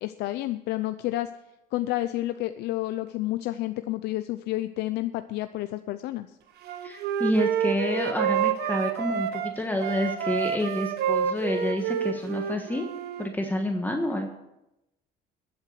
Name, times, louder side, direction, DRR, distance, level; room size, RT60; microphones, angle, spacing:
voice 1, 0.0-1.3 1.7-6.4, left 16 dB, 80° left, 10 dB, 0.5 m, -30 dB
Wind instrument woodwind instrument, 6.6-9.5 9.8-13.3, right 8 dB, 75° right, 1.3 m, -28 dB
voice 2, 6.8-12.9 13.2-14.3, left 1 dB, 10° left, 3 dB, 1.3 m, -28 dB
13.5 x 8.1 x 6.6 m, 0.91 s
cardioid pair, 110°, 17 cm